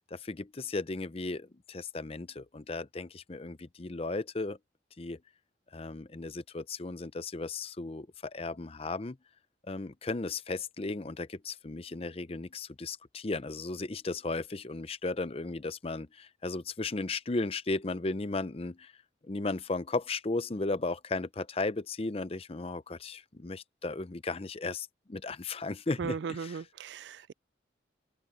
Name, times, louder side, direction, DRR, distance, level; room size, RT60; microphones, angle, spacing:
voice 1, 0.1-4.6 5.0-5.2 5.7-9.2 9.7-18.9 19.3-26.6, left 3 dB, 35° left, 0.6 m, -35 dB
voice 2, 26.0-27.3, right 6 dB, 70° right, 0.3 m, -37 dB
open air
head